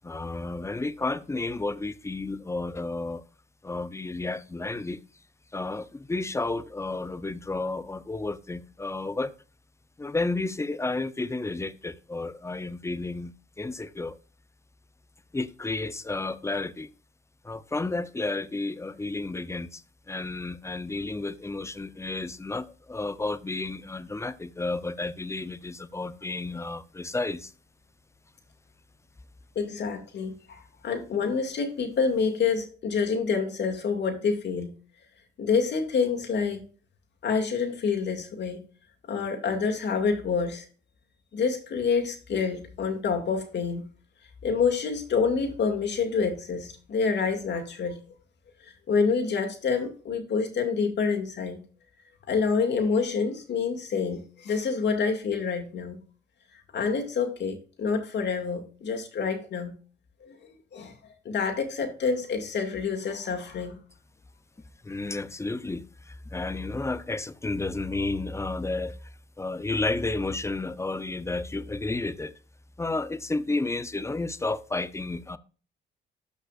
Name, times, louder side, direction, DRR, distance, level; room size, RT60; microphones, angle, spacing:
voice 1, 0.0-3.2 3.6-5.0 5.5-9.3 10.0-14.2 15.3-16.9 17.4-19.8 20.1-27.5 64.8-69.0 69.4-72.3 72.8-75.4, left 2 dB, 15° left, 0.6 m, -32 dB
voice 2, 29.6-34.7 35.4-36.6 37.2-38.7 39.1-40.6 41.3-43.8 44.4-48.0 48.9-51.6 52.3-56.0 56.7-59.7 60.2-60.3 60.7-60.9 61.2-63.8, left 5 dB, 60° left, 2.2 m, -27 dB
13.0 x 5.4 x 2.4 m
cardioid pair, 90°, 20 cm